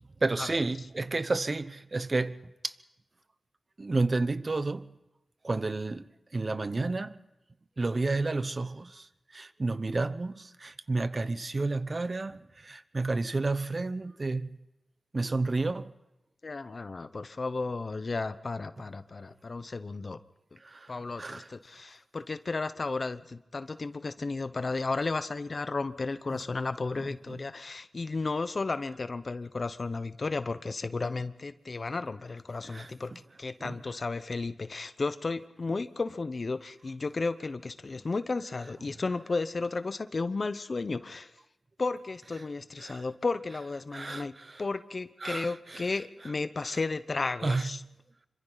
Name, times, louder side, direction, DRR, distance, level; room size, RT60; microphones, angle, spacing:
voice 1, 0.2-2.7 3.8-4.9 5.4-6.0 6.3-7.2 7.8-9.1 9.3-14.5 15.1-15.9 20.6-20.9 21.2-21.5 26.3-26.4 27.0-27.4 32.7-32.9 33.6-33.7 42.8-43.0 43.9-44.6 45.2-45.8 47.4-47.7, right 3 dB, 40° right, 1.0 m, -31 dB
voice 2, 16.4-20.2 20.9-33.1 33.4-41.3 41.8-44.3 44.6-47.8, left 3 dB, 50° left, 0.9 m, -33 dB
27.5 x 25.0 x 4.1 m
cardioid pair, 70°, 0 cm